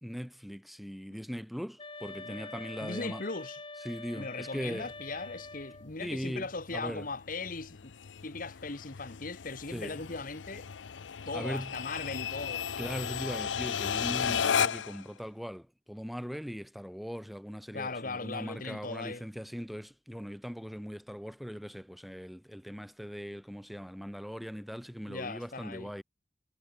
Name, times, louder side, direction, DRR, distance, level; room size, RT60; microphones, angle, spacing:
voice 1, 0.0-3.2 3.8-4.9 6.0-7.1 9.7-10.0 11.3-11.7 12.8-26.0, equal, ahead, 1.9 m, -40 dB
sound 1, 1.8-5.9, left 3 dB, 30° left, 3.8 m, -45 dB
voice 2, 2.8-3.6 4.1-7.9 8.2-10.7 11.3-13.0 17.7-19.2 25.1-25.9, left 3 dB, 50° left, 1.6 m, -39 dB
sound 2, 4.8-15.0, left 7 dB, 85° left, 0.6 m, -35 dB
head